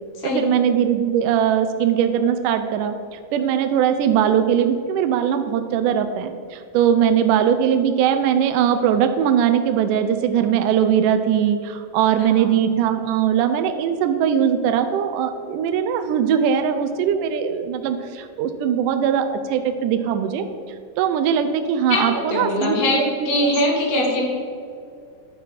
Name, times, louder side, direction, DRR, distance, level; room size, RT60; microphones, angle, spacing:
voice 1, 0.2-23.1 23.4-23.5, right 8 dB, 80° right, 7 dB, 1.9 m, -20 dB
voice 2, 21.9-23.0 23.3-24.3, left 1 dB, 75° left, -3 dB, 3.6 m, -21 dB
11.0 x 6.3 x 4.1 m, 2.4 s
omnidirectional pair, 4.0 m